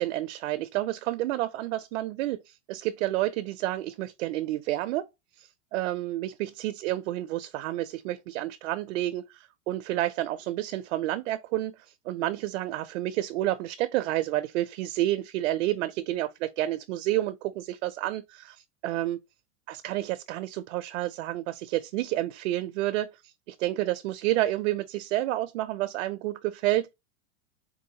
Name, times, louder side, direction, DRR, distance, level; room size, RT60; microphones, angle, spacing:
voice 1, 0.0-5.1 5.4-19.2 19.7-26.9, right 15 dB, 75° right, 0.5 m, -30 dB
3.8 x 2.5 x 2.7 m
supercardioid pair, 140°, 38 cm